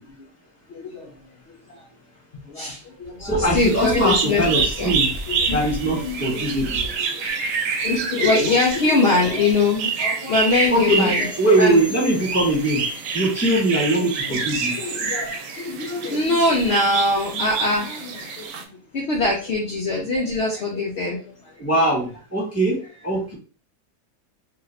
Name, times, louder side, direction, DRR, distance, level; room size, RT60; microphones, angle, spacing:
voice 1, 0.7-1.1 1.5-1.8 2.3-4.4 4.8-4.9 5.3-6.5 6.8-7.2 7.7-11.8 14.0-14.4 14.7-21.7, left 2 dB, 65° left, -3 dB, 0.6 m, -23 dB
voice 2, 3.2-5.1 5.5-6.8 10.7-11.1 11.4-12.8 13.1-14.7 21.6-23.3, right 1 dB, 10° left, -4 dB, 1.1 m, -21 dB
sound 1, 3.6-18.6, right 5 dB, 90° right, 1.2 m, -27 dB
2.7 x 2.5 x 3.1 m, 0.38 s
omnidirectional pair, 1.8 m